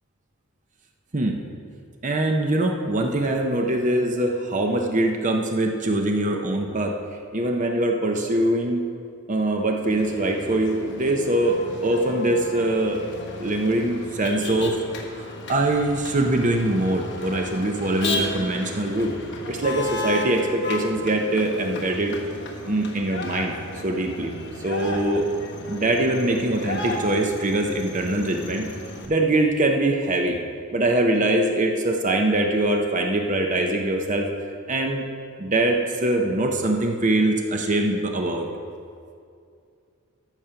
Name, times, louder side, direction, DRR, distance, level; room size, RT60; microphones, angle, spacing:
voice 1, 1.1-1.4 2.0-7.0 7.3-8.8 9.3-13.0 13.4-14.8 15.1-19.1 19.5-22.2 22.7-23.5 23.8-24.3 24.6-25.3 25.7-28.7 29.1-30.4 30.7-34.3 34.7-35.1 35.4-38.5, right 1 dB, 35° right, 2 dB, 0.7 m, -23 dB
Motor vehicle (road), 9.8-29.1, left 2 dB, 50° left, 1.5 m, -34 dB
14.0 x 6.2 x 5.7 m, 2.4 s
head